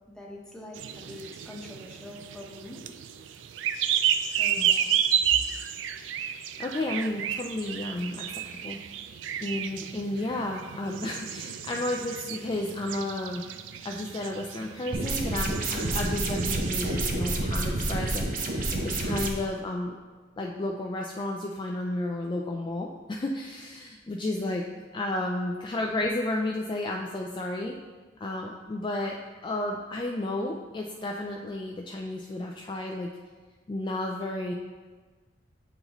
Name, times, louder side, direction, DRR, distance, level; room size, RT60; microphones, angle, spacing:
voice 1, 0.1-2.8 3.3-3.4 4.3-5.4, left 1 dB, 5° left, -3 dB, 0.9 m, -44 dB
sound 1, 0.7-17.1, right 9 dB, 75° right, 0.3 m, -32 dB
voice 2, 6.6-8.3 8.6-8.8 9.4-13.4 13.8-20.0 20.4-24.7 24.9-27.7 28.2-29.2 29.4-33.1 33.7-34.5, left 1 dB, 25° left, 0 dB, 0.3 m, -32 dB
sound 2, 14.9-19.3, right 2 dB, 50° right, 0.6 m, -29 dB
8.1 x 3.9 x 3.0 m, 1.3 s
head